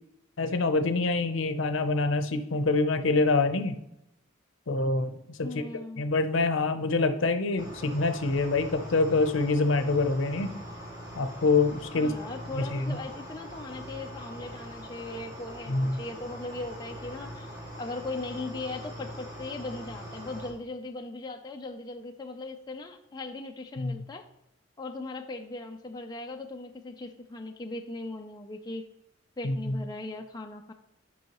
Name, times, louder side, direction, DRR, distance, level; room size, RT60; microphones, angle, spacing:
voice 1, 0.4-3.8 4.7-5.6 6.0-10.5 11.2-12.1 12.5-13.0 15.7-16.0 23.8-24.0 29.4-29.8, left 3 dB, 70° left, 9 dB, 0.6 m, -26 dB
voice 2, 5.4-6.0 12.0-24.3 24.8-28.9 29.4-30.7, left 2 dB, 20° left, 4 dB, 0.3 m, -39 dB
sound 1, 7.6-20.5, equal, 15° right, 2.0 m, -42 dB
9.3 x 5.4 x 3.0 m, 0.81 s
head